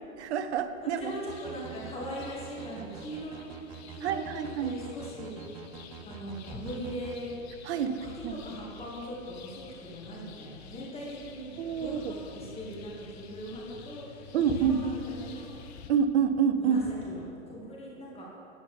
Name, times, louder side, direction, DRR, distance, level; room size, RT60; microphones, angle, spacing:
voice 1, 0.2-1.1 4.0-4.8 7.6-7.9 8.2-8.4 11.6-12.1 14.3-14.8 15.9-16.8, right 7 dB, 55° right, 10 dB, 0.8 m, -27 dB
voice 2, 0.8-5.3 6.0-7.4 7.7-15.6 16.6-18.3, equal, 15° left, -4 dB, 1.6 m, -40 dB
sound 1, 1.0-15.9, left 7 dB, 50° left, 0.9 m, -50 dB
sound 2, 1.3-7.2, right 8 dB, 30° right, 0.4 m, -46 dB
9.6 x 9.6 x 3.5 m, 2.6 s
hypercardioid pair, 115°, 41 cm